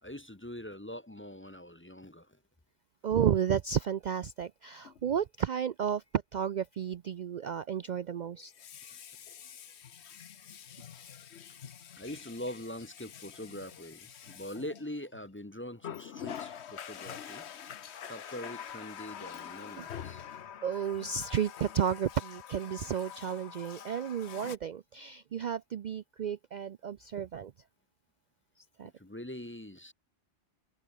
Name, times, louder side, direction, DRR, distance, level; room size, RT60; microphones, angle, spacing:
voice 1, 0.0-2.4 11.9-17.5 18.1-20.2 28.8-29.9, left 1 dB, 10° left, 0.8 m, -43 dB
voice 2, 3.0-6.0 6.3-8.5 19.8-19.9 20.6-27.5 28.8-28.9, right 8 dB, 55° right, 0.5 m, -32 dB
Water tap faucet, 4.8-5.0 8.4-15.3 15.8-24.6, left 9 dB, 75° left, 1.2 m, -46 dB
omnidirectional pair, 1.1 m